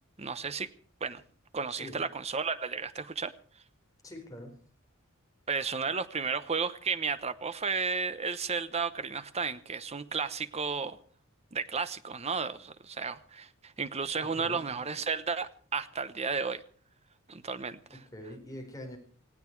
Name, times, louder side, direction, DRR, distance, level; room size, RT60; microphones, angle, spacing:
voice 1, 0.2-0.7 1.0-1.2 1.5-3.3 5.5-11.0 11.5-16.6 17.3-18.0, right 5 dB, 30° right, 0.9 m, -33 dB
voice 2, 1.7-2.0 4.0-4.6 14.2-14.6 17.9-19.0, left 1 dB, 15° left, 4.4 m, -44 dB
19.0 x 16.5 x 4.7 m
head